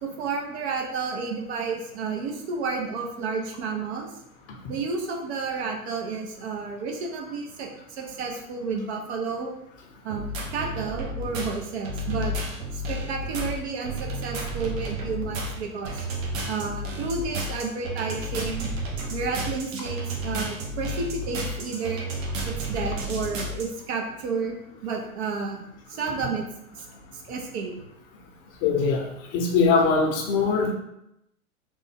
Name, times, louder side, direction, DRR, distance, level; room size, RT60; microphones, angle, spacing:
voice 1, 0.0-4.1 4.7-9.5 10.0-12.3 12.7-16.1 16.5-18.7 19.1-22.1 22.4-24.6 24.8-26.4 26.7-26.8 27.1-27.7, right 4 dB, 50° right, 1 dB, 0.7 m, -31 dB
sound 1, 10.1-23.6, right 1 dB, 65° right, 1.0 m, -32 dB
voice 2, 28.6-29.0 29.3-30.7, left 4 dB, 40° left, 1 dB, 0.7 m, -21 dB
3.4 x 2.1 x 3.3 m, 0.82 s
hypercardioid pair, 110°, 43 cm